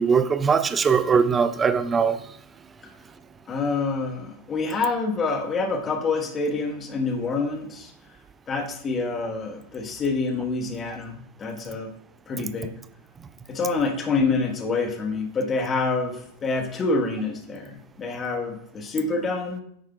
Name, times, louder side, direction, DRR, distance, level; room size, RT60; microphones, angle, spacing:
voice 1, 0.0-2.2, right 6 dB, 20° right, 12 dB, 0.5 m, -20 dB
voice 2, 3.5-7.9 8.5-11.9 12.3-12.7 13.5-19.6, left 3 dB, 20° left, 4 dB, 1.3 m, -27 dB
9.4 x 8.8 x 2.4 m, 0.68 s
figure-of-eight pair, 90°, 0 cm